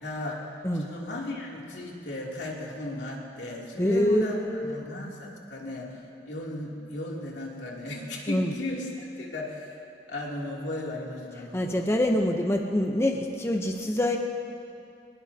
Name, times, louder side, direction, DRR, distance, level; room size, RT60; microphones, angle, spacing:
voice 1, 0.0-0.4 0.8-9.8 10.1-11.9, left 1 dB, 85° left, -3 dB, 2.9 m, -36 dB
voice 2, 3.8-4.8 8.3-8.5 11.5-14.2, left 1 dB, 15° left, 3 dB, 0.8 m, -25 dB
21.0 x 20.0 x 2.8 m, 2.5 s
head